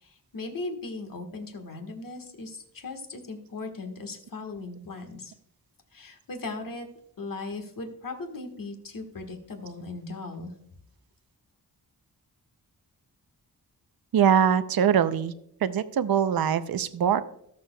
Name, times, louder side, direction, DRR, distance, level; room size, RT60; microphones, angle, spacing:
voice 1, 0.0-5.3 5.9-6.9 7.2-10.5, left 3 dB, 55° left, 4 dB, 1.5 m, -38 dB
voice 2, 14.1-15.3 15.6-17.2, right 8 dB, 65° right, 13 dB, 0.6 m, -22 dB
17.5 x 7.0 x 2.3 m, 0.72 s
wide cardioid pair, 125°, 39 cm